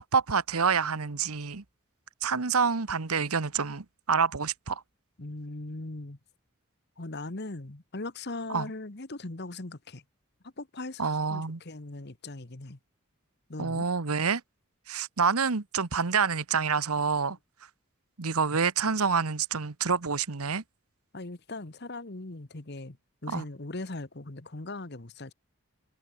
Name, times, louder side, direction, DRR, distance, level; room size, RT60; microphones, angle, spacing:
voice 1, 0.0-1.6 2.2-4.8 8.5-8.7 11.0-11.6 13.6-14.4 14.9-17.4 18.2-20.6 23.3-23.4, right 5 dB, 90° right, 1.2 m, -27 dB
voice 2, 5.2-6.2 7.0-10.0 10.4-12.8 13.5-13.9 21.1-23.0 23.2-25.3, left 2 dB, 50° left, 1.3 m, -39 dB
head